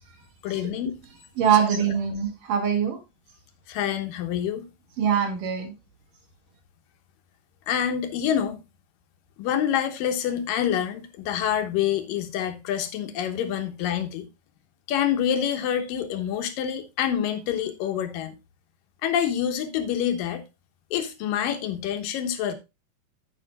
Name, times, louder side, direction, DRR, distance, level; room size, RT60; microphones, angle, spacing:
voice 1, 0.4-1.0 3.7-4.6 7.7-8.6 9.4-14.3 14.9-18.3 19.0-20.4 20.9-22.6, left 9 dB, 80° left, 2.8 m, -27 dB
voice 2, 1.4-3.0 5.0-5.7, right 8 dB, 70° right, 3.5 m, -23 dB
10.5 x 9.1 x 2.2 m
omnidirectional pair, 4.0 m